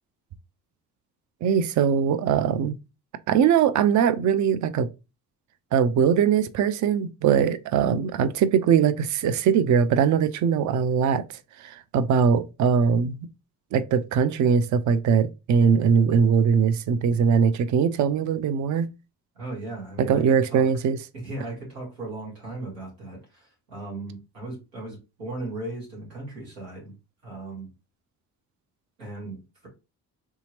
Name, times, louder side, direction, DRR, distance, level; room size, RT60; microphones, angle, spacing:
voice 1, 1.4-2.7 3.3-4.9 5.7-11.2 11.6-13.3 13.7-18.9 20.0-21.0, right 7 dB, 40° right, 0.5 m, -21 dB
voice 2, 19.3-20.7 21.1-26.9 27.2-27.7 29.0-29.7, right 2 dB, 85° right, 1.7 m, -37 dB
3.5 x 2.8 x 2.8 m
hypercardioid pair, 40°, 47 cm